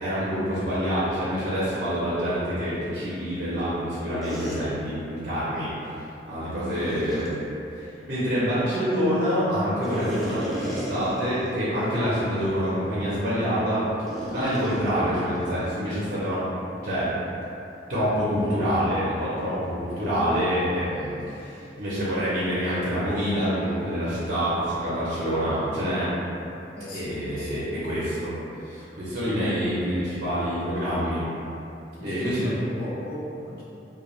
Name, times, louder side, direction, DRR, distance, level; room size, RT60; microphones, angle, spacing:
voice 1, 0.0-5.7 6.3-7.3 7.8-13.9 14.3-16.5 16.8-17.1 17.9-26.1 26.9-28.4 28.6-31.2 32.0-32.5, equal, 55° right, -10 dB, 0.6 m, -26 dB
sound 1, 4.2-4.6 6.6-7.3 9.8-11.5 11.9-12.0 12.6-12.8 14.1-15.9, equal, ahead, 0.5 m, -34 dB
voice 2, 6.5-7.2 26.7-27.7 32.0-33.6, equal, 60° left, -7 dB, 0.7 m, -37 dB
2.4 x 2.2 x 3.0 m, 2.8 s
head